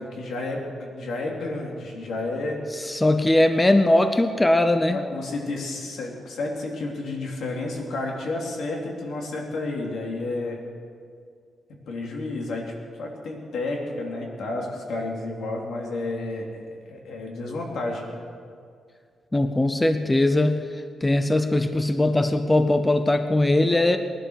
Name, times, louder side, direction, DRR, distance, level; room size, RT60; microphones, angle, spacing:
voice 1, 0.0-2.6 4.9-10.6 11.7-12.7 13.0-18.1, left 2 dB, 80° left, -1 dB, 3.0 m, -31 dB
voice 2, 2.8-5.0 19.3-20.7 21.0-24.0, left 1 dB, 10° left, 8 dB, 0.5 m, -20 dB
19.5 x 11.5 x 6.4 m, 2.2 s
wide cardioid pair, 175°, 0 cm